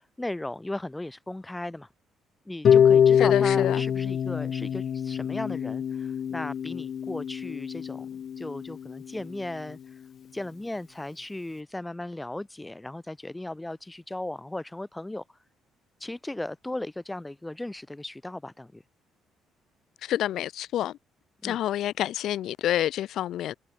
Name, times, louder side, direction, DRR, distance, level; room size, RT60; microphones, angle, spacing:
voice 1, 0.0-1.9 2.5-9.8 10.3-15.2 16.0-18.8 21.4-21.6, left 1 dB, 10° left, 3.6 m, -36 dB
Harp, 2.6-8.7, left 8 dB, 45° left, 2.0 m, -24 dB
voice 2, 3.2-3.8 20.0-21.0 21.4-23.5, left 12 dB, 65° left, 2.3 m, -28 dB
cardioid pair, 135°, 0 cm